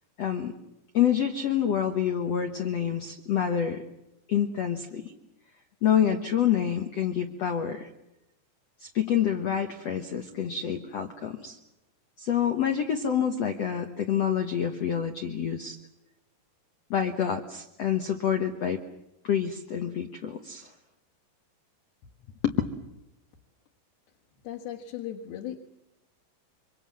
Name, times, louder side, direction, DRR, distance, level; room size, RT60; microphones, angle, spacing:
voice 1, 0.2-0.5 0.9-3.8 4.3-5.1 5.8-7.9 8.8-11.6 12.2-15.8 16.9-18.8 19.2-20.7 22.4-22.6, left 9 dB, 85° left, 6 dB, 1.4 m, -27 dB
voice 2, 24.4-25.6, left 10 dB, 65° left, -1 dB, 3.2 m, -37 dB
26.5 x 25.0 x 7.5 m, 0.90 s
omnidirectional pair, 5.1 m